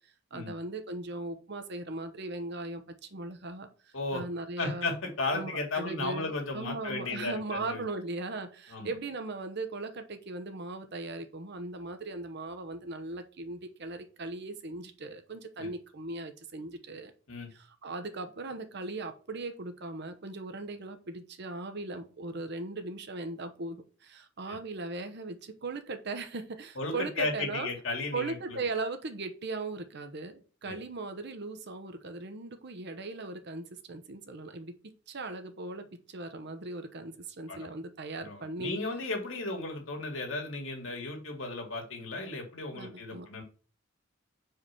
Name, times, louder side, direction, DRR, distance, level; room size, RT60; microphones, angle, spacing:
voice 1, 0.3-4.9 5.3-17.1 17.5-27.7 28.1-34.7 35.1-38.7 42.7-43.3, right 3 dB, 60° right, 8 dB, 1.0 m, -38 dB
voice 2, 4.6-7.8 8.7-8.9 15.6-15.7 17.3-17.5 24.5-24.6 26.8-28.6 30.7-30.8 37.5-37.7 38.2-43.4, left 2 dB, 75° left, 2 dB, 2.2 m, -35 dB
4.9 x 4.8 x 5.8 m, 0.38 s
head